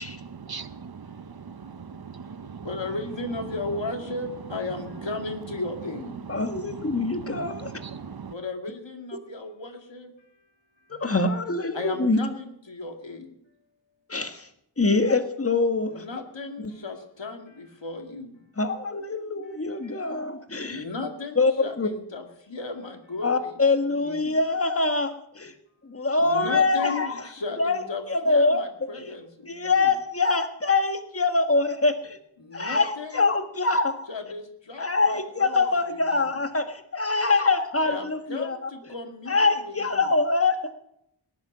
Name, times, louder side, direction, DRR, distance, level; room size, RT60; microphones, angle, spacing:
voice 1, 0.1-2.7 6.4-8.3, right 6 dB, 50° right, 13 dB, 0.8 m, -40 dB
voice 2, 2.6-6.2 8.3-10.1 11.0-11.2 11.7-13.3 15.9-18.4 19.8-20.2 20.6-23.6 24.0-24.3 26.2-29.9 32.4-33.3 34.1-36.4 37.8-40.1, left 3 dB, 65° left, 4 dB, 2.4 m, -35 dB
voice 3, 6.3-7.7 10.9-12.2 14.1-14.5 14.8-16.0 18.6-20.8 21.4-21.9 23.2-25.5 25.8-27.1 27.6-28.6 29.5-32.2 32.5-34.1 34.8-38.6 39.3-40.7, left 3 dB, 30° left, 7 dB, 1.5 m, -24 dB
19.0 x 10.5 x 6.2 m, 0.74 s
wide cardioid pair, 80°, 47 cm